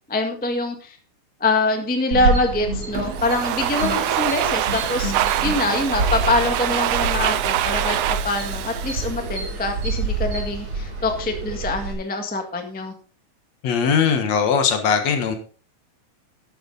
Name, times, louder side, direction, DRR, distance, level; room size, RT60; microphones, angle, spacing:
voice 1, 0.1-1.0 1.4-5.1 5.4-12.9, left 2 dB, 5° left, 4 dB, 0.9 m, -24 dB
sound 1, 2.1-11.9, right 3 dB, 55° right, 4.6 m, -28 dB
Domestic sounds home sounds, 2.9-9.8, right 13 dB, 75° right, 1.7 m, -25 dB
voice 2, 13.6-15.4, left 6 dB, 65° left, 7 dB, 2.5 m, -20 dB
12.5 x 9.4 x 4.0 m, 0.41 s
omnidirectional pair, 3.4 m